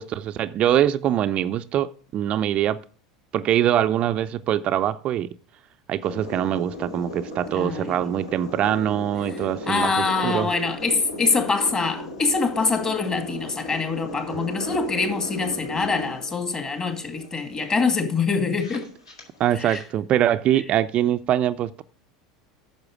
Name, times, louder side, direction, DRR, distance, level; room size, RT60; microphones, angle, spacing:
voice 1, 0.0-2.8 3.3-5.3 5.9-9.9 10.2-10.5 19.4-21.8, right 11 dB, 40° right, 0.4 m, -23 dB
sound 1, 6.0-19.8, left 1 dB, 80° left, 2.8 m, -36 dB
voice 2, 7.5-8.0 9.7-18.9 19.6-19.8, left 4 dB, 25° left, 2.2 m, -24 dB
9.5 x 6.7 x 4.9 m
figure-of-eight pair, 80°, 3 cm